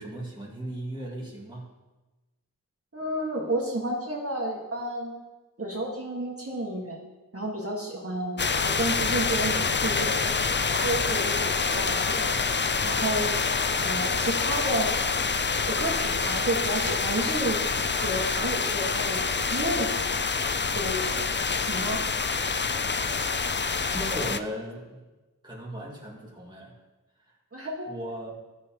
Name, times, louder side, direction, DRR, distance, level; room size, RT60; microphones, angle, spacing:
voice 1, 0.0-1.7 23.9-25.0 25.4-26.7 27.9-28.4, equal, 15° right, -4 dB, 2.1 m, -36 dB
voice 2, 2.9-5.2 5.6-7.0 7.3-10.3 10.7-12.4 12.8-13.4 13.8-15.1 15.7-20.3 20.7-21.3 21.7-22.0 27.5-27.9, right 1 dB, 40° right, -4 dB, 1.7 m, -31 dB
sound 1, 8.4-16.3, left 3 dB, 80° left, 1.0 m, -41 dB
sound 2, 8.4-24.4, left 5 dB, 35° left, 0.4 m, -27 dB
14.0 x 6.7 x 3.0 m, 1.1 s
wide cardioid pair, 45°, 34 cm